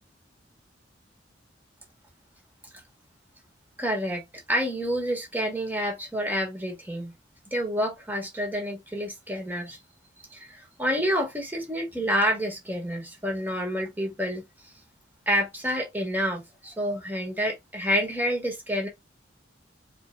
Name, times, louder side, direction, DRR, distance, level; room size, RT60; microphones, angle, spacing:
voice 1, 3.8-4.2 4.5-7.1 7.5-9.8 10.3-14.4 15.2-18.9, equal, 10° right, 1.6 m, -28 dB
4.4 x 3.6 x 2.5 m
head